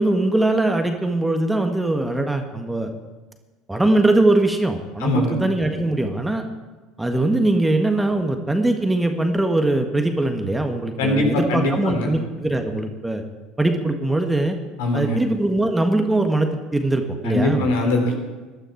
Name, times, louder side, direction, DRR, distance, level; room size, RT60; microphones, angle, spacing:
voice 1, 0.0-2.9 3.7-6.4 7.0-13.2 13.6-14.5 14.9-17.7, right 2 dB, 10° right, 5 dB, 1.6 m, -21 dB
voice 2, 5.0-5.3 11.0-12.1 14.8-15.2 17.2-18.3, left 1 dB, 65° left, 2 dB, 3.5 m, -21 dB
19.5 x 12.0 x 4.6 m, 1.2 s
figure-of-eight pair, 65°, 0 cm